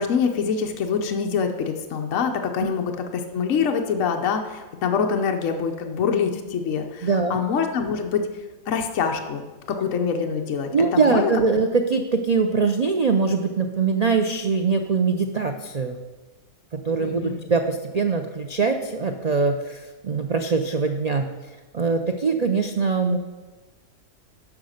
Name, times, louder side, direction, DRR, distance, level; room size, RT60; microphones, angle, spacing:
voice 1, 0.0-8.3 8.7-9.4 9.7-11.3 17.0-17.4, left 6 dB, 60° left, 3 dB, 1.1 m, -25 dB
voice 2, 7.0-7.4 10.7-16.0 16.7-21.3 21.7-23.2, right 4 dB, 75° right, 5 dB, 0.3 m, -22 dB
9.7 x 5.9 x 6.4 m, 1.2 s
omnidirectional pair, 1.6 m